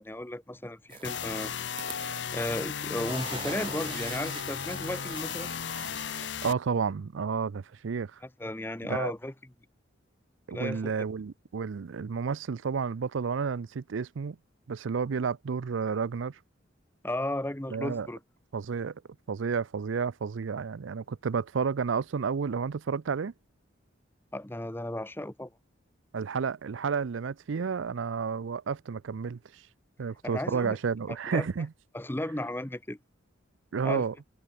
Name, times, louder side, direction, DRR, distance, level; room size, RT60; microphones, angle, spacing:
voice 1, 0.0-1.5 2.0-5.5 8.4-9.3 10.5-10.9 17.0-18.2 24.3-25.5 30.2-30.8 31.3-31.5 31.9-33.0 33.8-34.0, left 1 dB, 10° left, 0.8 m, -34 dB
sound 1, 0.9-2.7 3.0-6.3, right 6 dB, 25° right, 0.5 m, -44 dB
sound 2, 1.0-6.5, left 8 dB, 65° left, 0.7 m, -35 dB
voice 2, 6.4-8.2 8.8-9.1 10.5-14.4 14.7-16.4 17.7-18.1 18.5-19.0 19.3-23.3 26.1-29.6 30.0-31.7 33.7-34.1, right 5 dB, 75° right, 0.5 m, -31 dB
head